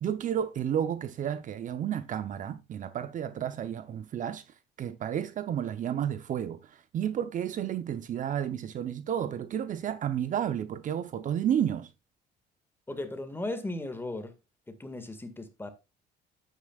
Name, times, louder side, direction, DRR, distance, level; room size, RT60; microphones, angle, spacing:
voice 1, 0.0-4.4 4.8-11.9, right 9 dB, 50° right, 0.8 m, -31 dB
voice 2, 12.9-14.3 14.7-15.7, left 2 dB, 15° left, 1.9 m, -36 dB
9.7 x 9.1 x 2.4 m
cardioid pair, 110°, 17 cm